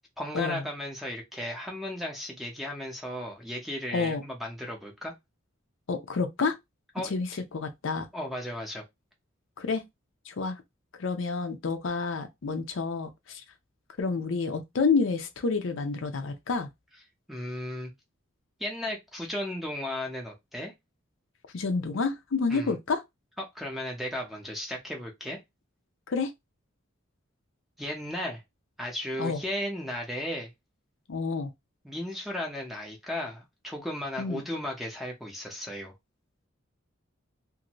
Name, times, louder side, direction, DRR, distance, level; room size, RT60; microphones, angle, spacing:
voice 1, 0.2-5.1 6.9-7.1 8.1-8.8 17.3-17.9 18.6-20.7 22.5-22.8 23.4-25.4 27.8-28.4 28.8-30.5 31.8-35.9, left 1 dB, ahead, 0.7 m, -35 dB
voice 2, 3.9-4.2 5.9-6.6 7.0-8.1 9.6-9.8 10.3-10.6 11.0-13.4 14.0-16.7 21.5-23.0 26.1-26.3 29.2-29.4 31.1-31.5 34.2-34.4, left 4 dB, 65° left, 0.5 m, -29 dB
2.6 x 2.6 x 2.9 m
head